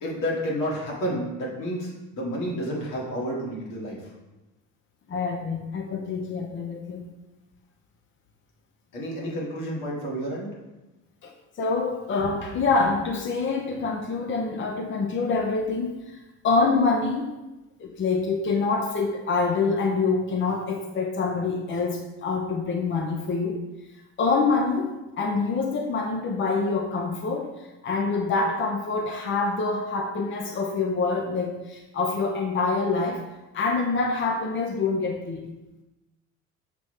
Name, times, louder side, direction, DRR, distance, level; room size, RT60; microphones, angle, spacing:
voice 1, 0.0-4.0 8.9-10.5, equal, 75° left, -3 dB, 2.1 m, -30 dB
voice 2, 5.1-7.1 11.2-16.2 16.4-17.3 17.8-23.6 24.2-33.2 33.5-35.4, left 4 dB, 40° left, 3 dB, 0.7 m, -26 dB
6.8 x 4.6 x 3.2 m, 1.0 s
supercardioid pair, 80°, 32 cm